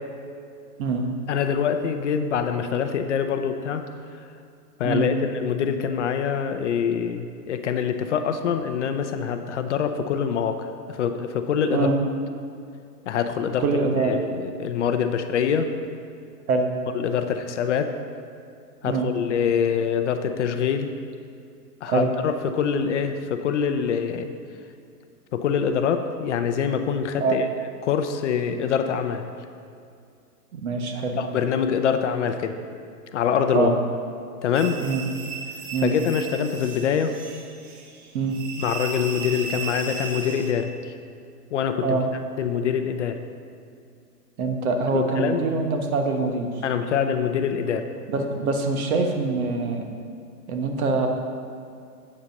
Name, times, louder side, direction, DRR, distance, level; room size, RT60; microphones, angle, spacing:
voice 1, 1.3-3.8 4.8-11.9 13.1-13.7 14.0-15.7 16.9-17.9 18.8-20.9 21.8-24.3 25.3-27.4 27.8-29.3 31.2-32.5 33.1-33.7 34.4-34.8 35.8-37.1 38.6-40.7 41.5-42.0 42.4-43.2 44.9-45.4 46.6-47.9, left 7 dB, 45° left, 7 dB, 0.6 m, -25 dB
voice 2, 13.6-14.1 16.5-16.7 18.8-19.1 21.8-22.1 27.2-27.4 30.5-31.2 33.5-33.8 34.8-35.0 35.7-35.9 38.1-38.4 41.8-42.1 44.4-46.5 48.1-49.8 50.5-51.1, right 4 dB, 60° right, 3 dB, 1.3 m, -24 dB
sound 1, 34.5-40.5, right 5 dB, 30° right, 0.8 m, -36 dB
7.9 x 6.8 x 5.3 m, 2.4 s
hypercardioid pair, 135°, 49 cm